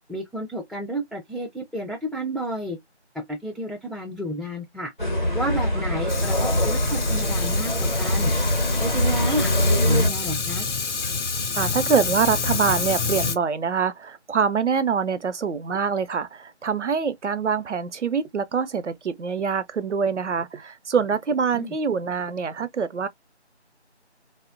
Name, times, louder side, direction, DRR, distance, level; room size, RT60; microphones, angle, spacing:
voice 1, 0.1-2.8 3.1-4.9 5.3-8.3 8.8-10.7 21.5-21.7, right 1 dB, ahead, 0.4 m, -31 dB
sound 1, 5.0-10.1, equal, 45° left, 0.7 m, -23 dB
Fire, 6.1-13.4, left 4 dB, 85° left, 0.6 m, -28 dB
voice 2, 11.6-23.1, right 6 dB, 85° right, 0.5 m, -25 dB
2.7 x 2.0 x 2.4 m
figure-of-eight pair, 175°, 35 cm